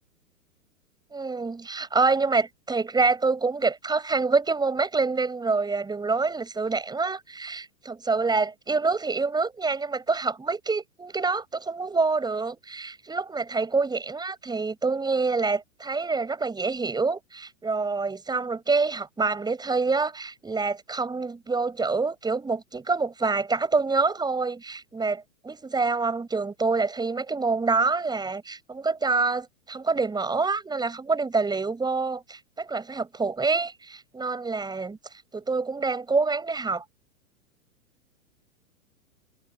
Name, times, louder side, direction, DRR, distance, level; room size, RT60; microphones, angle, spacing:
voice 1, 1.1-35.0 35.3-36.8, right 4 dB, 10° right, 7.1 m, -26 dB
hypercardioid pair, 110°, 42 cm